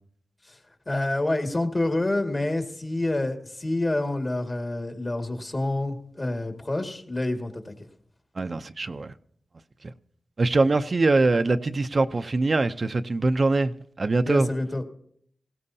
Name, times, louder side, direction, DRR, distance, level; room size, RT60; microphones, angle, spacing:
voice 1, 0.9-7.7 14.2-14.8, left 2 dB, 40° left, 2.0 m, -27 dB
voice 2, 8.4-9.1 10.4-14.5, right 3 dB, 50° right, 0.6 m, -23 dB
18.0 x 16.5 x 2.8 m
cardioid pair, 45°, 0 cm